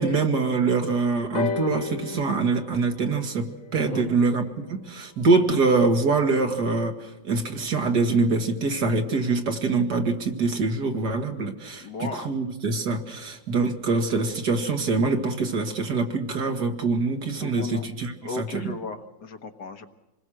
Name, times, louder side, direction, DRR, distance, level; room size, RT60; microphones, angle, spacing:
voice 1, 0.0-18.7, right 3 dB, 60° right, 4 dB, 2.4 m, -24 dB
sound 1, 1.3-5.2 6.1-6.2, left 4 dB, 50° left, 1.9 m, -35 dB
voice 2, 3.8-4.2 11.8-12.3 17.4-17.9 18.2-19.9, left 3 dB, 65° left, 6 dB, 1.9 m, -35 dB
26.5 x 20.5 x 6.4 m, 0.97 s
omnidirectional pair, 2.0 m